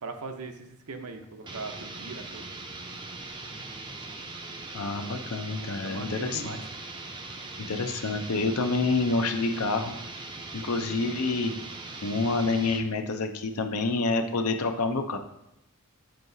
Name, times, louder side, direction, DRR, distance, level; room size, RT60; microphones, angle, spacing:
voice 1, 0.0-2.5 5.8-6.7, right 3 dB, 85° right, 5 dB, 0.7 m, -40 dB
sound 1, 1.4-12.9, right 3 dB, 20° right, 0.4 m, -40 dB
voice 2, 4.7-6.5 7.6-9.9 10.5-11.5 12.0-15.2, left 3 dB, 80° left, 6 dB, 0.6 m, -28 dB
7.6 x 4.7 x 2.7 m, 0.83 s
head